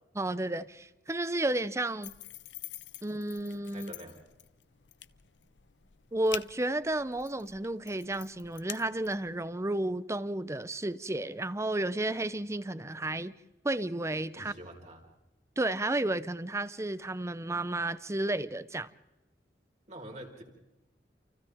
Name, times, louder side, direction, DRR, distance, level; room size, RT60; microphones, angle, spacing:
voice 1, 0.2-2.1 3.0-3.9 6.1-13.3 13.6-14.5 15.6-18.9, right 1 dB, 15° right, 0.7 m, -32 dB
sound 1, 2.0-9.4, left 12 dB, 90° left, 0.8 m, -47 dB
voice 2, 3.7-4.2 14.3-15.1 19.9-20.4, right 1 dB, 40° right, 4.6 m, -46 dB
29.0 x 28.5 x 3.6 m
head